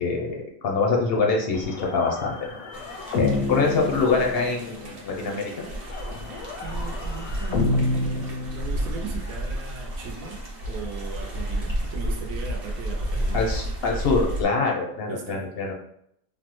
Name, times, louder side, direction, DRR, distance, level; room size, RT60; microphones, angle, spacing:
voice 1, 0.0-2.4 3.2-5.5 13.3-15.7, left 4 dB, 65° left, 0 dB, 0.6 m, -24 dB
sound 1, 1.5-4.8 5.9-9.2, left 3 dB, 85° left, 1.1 m, -29 dB
sound 2, 2.7-14.4, equal, 40° right, 0.6 m, -31 dB
voice 2, 6.6-13.4 15.1-15.5, right 4 dB, 80° right, 1 dB, 1.0 m, -38 dB
3.4 x 2.0 x 2.9 m, 0.72 s
omnidirectional pair, 1.5 m